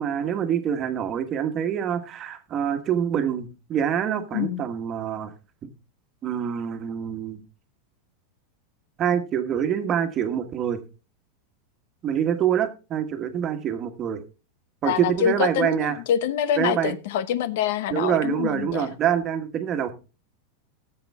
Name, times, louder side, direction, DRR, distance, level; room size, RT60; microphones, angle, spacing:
voice 1, 0.0-5.3 6.2-7.4 9.0-10.8 12.0-14.2 14.8-16.0 16.6-16.9 17.9-19.9, right 9 dB, 30° right, 8 dB, 1.4 m, -25 dB
voice 2, 4.3-4.6 14.8-18.9, left 9 dB, 65° left, 15 dB, 0.9 m, -26 dB
13.5 x 7.8 x 3.6 m, 0.32 s
supercardioid pair, 145°, 0 cm